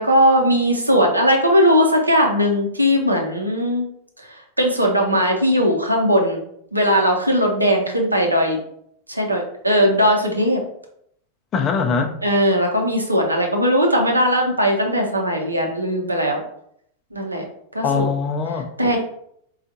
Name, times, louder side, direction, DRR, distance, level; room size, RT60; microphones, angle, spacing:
voice 1, 0.0-3.9 4.2-6.4 6.7-8.6 9.1-10.6 12.2-16.4 17.1-17.4 17.7-18.1 18.8-19.0, equal, 85° right, 1 dB, 0.7 m, -18 dB
voice 2, 11.5-12.2 17.8-18.7, left 5 dB, 30° left, 5 dB, 0.5 m, -22 dB
4.3 x 2.4 x 2.6 m, 0.70 s
figure-of-eight pair, 90°, 0 cm